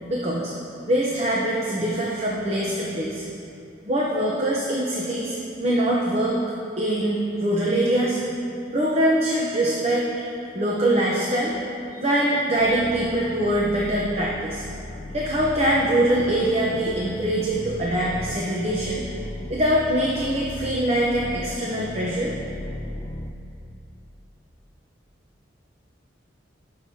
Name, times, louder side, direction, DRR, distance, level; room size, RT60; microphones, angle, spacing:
voice 1, 0.1-0.5 0.9-3.2 3.8-6.4 6.8-8.2 8.7-10.0 10.5-11.5 11.9-14.6 15.1-19.0 19.5-22.4, right 1 dB, 35° right, -4 dB, 0.8 m, -23 dB
sound 1, 12.6-23.3, left 1 dB, 20° left, 0.4 m, -37 dB
17.5 x 6.7 x 2.8 m, 2.7 s
head